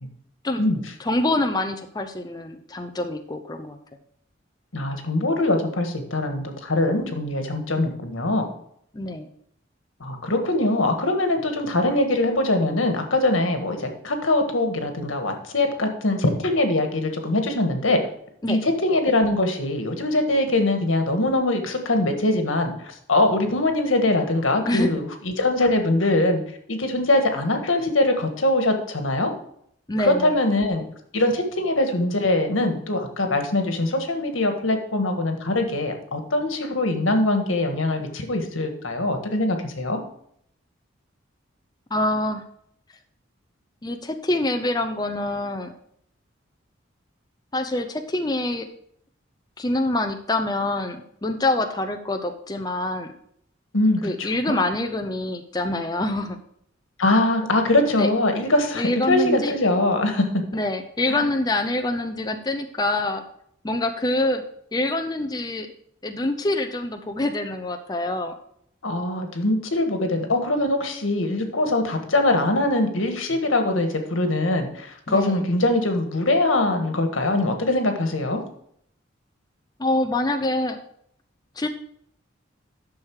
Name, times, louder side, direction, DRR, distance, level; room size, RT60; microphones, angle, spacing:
voice 1, 1.0-3.8 8.9-9.3 18.4-18.6 24.6-24.9 29.9-30.3 41.9-42.4 43.8-45.7 47.5-48.7 49.6-53.1 54.0-56.4 57.9-58.1 58.8-59.6 60.5-63.2 63.6-64.4 64.7-65.7 66.0-68.3 75.1-75.4 79.8-80.8 81.6-81.7, left 2 dB, 20° left, 6 dB, 0.6 m, -25 dB
voice 2, 4.7-8.5 10.0-18.0 18.5-26.4 26.7-29.3 30.0-30.8 31.1-40.0 53.7-54.6 57.0-60.3 61.1-61.2 68.8-78.4, left 2 dB, 90° left, 5 dB, 1.6 m, -22 dB
10.5 x 6.5 x 4.8 m, 0.69 s
head